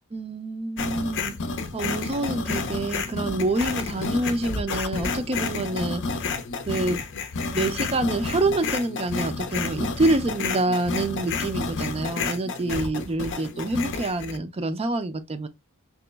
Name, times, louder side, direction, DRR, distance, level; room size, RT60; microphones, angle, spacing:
voice 1, 0.1-1.3 1.7-6.0 6.7-7.0 7.5-15.5, right 2 dB, 25° right, 0.4 m, -27 dB
sound 1, 0.8-14.4, left 4 dB, 55° left, 0.6 m, -30 dB
3.0 x 2.9 x 3.3 m
head